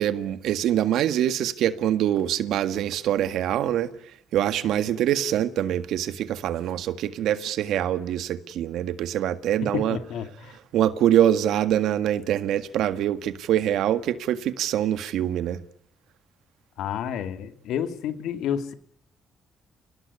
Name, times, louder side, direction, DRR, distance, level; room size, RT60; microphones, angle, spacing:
voice 1, 0.0-3.9 4.3-10.0 10.7-15.6, right 11 dB, 85° right, 1.8 m, -24 dB
voice 2, 9.6-10.6 16.8-18.7, left 8 dB, 85° left, 2.4 m, -30 dB
29.5 x 18.0 x 9.7 m
cardioid pair, 90°, 0 cm